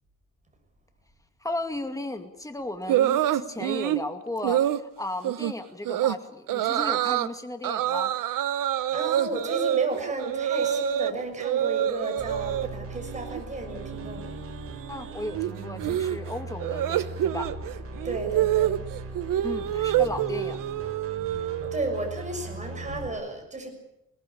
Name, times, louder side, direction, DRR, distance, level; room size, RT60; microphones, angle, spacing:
voice 1, 1.4-8.1 14.9-17.5 19.4-20.6, left 2 dB, 10° left, 7 dB, 2.3 m, -35 dB
sound 1, 2.9-4.0 4.4-4.8 5.2-5.5 5.9-6.2 6.5-7.3 7.6-11.1 11.4-12.7 13.0-13.4 13.7-21.9, right 12 dB, 85° right, 1.1 m, -27 dB
voice 2, 8.9-14.4 18.0-18.8 21.3-23.7, right 2 dB, 20° right, 4 dB, 6.5 m, -33 dB
sound 2, 12.2-23.1, right 3 dB, 45° right, 5.2 m, -39 dB
21.5 x 18.5 x 8.6 m, 0.83 s
cardioid pair, 120°, 32 cm